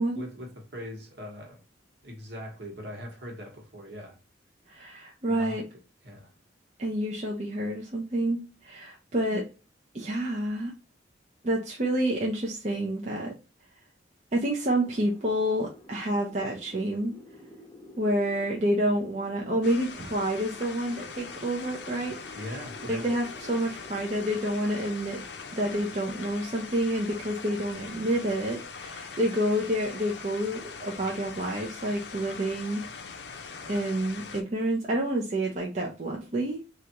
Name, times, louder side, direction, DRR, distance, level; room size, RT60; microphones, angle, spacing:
voice 1, 0.1-1.6 2.0-4.2 5.3-5.6 6.0-6.3 22.3-23.2, left 1 dB, 65° right, 1.2 m, -41 dB
voice 2, 4.7-5.6 6.8-9.5 9.9-10.7 11.4-13.3 14.3-17.1 18.0-22.4 22.9-25.2 25.5-32.8 33.7-36.6, right 1 dB, 40° right, 0.6 m, -28 dB
sound 1, 14.7-26.0, left 1 dB, 10° left, 0.8 m, -51 dB
sound 2, 19.6-34.4, left 5 dB, 65° left, 0.5 m, -42 dB
3.3 x 2.5 x 2.8 m
head